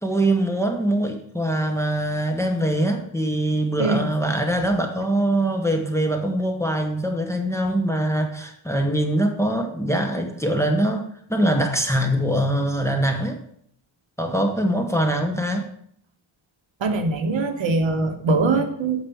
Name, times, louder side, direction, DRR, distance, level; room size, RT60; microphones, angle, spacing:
voice 1, 0.0-13.4 14.2-15.7, right 1 dB, 5° left, 3 dB, 0.9 m, -23 dB
voice 2, 16.8-19.1, right 3 dB, 65° right, 6 dB, 1.3 m, -22 dB
9.0 x 5.9 x 6.9 m, 0.66 s
wide cardioid pair, 175°, 48 cm